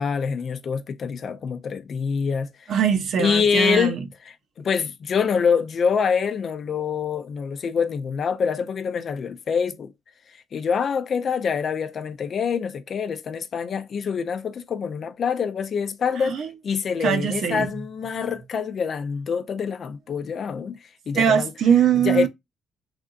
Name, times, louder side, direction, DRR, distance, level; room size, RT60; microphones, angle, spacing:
voice 1, 0.0-2.7 3.2-4.0 4.6-9.9 10.5-20.8 21.1-21.5 22.0-22.3, left 6 dB, 55° left, 0.5 m, -25 dB
voice 2, 2.7-4.0 16.2-16.5 17.0-17.7 21.1-22.3, right 8 dB, 70° right, 0.8 m, -21 dB
3.3 x 2.6 x 2.5 m
cardioid pair, 90°, 0 cm